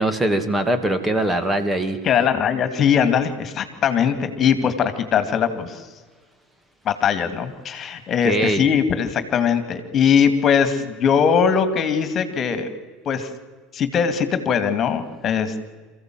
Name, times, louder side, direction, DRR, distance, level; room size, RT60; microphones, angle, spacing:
voice 1, 0.0-2.0 8.2-8.6, right 1 dB, 15° right, 9 dB, 2.5 m, -21 dB
voice 2, 2.0-5.9 6.8-12.7 13.1-13.3 13.7-15.7, left 7 dB, 40° left, 10 dB, 2.4 m, -20 dB
28.5 x 15.0 x 7.8 m, 1.4 s
figure-of-eight pair, 70°, 0 cm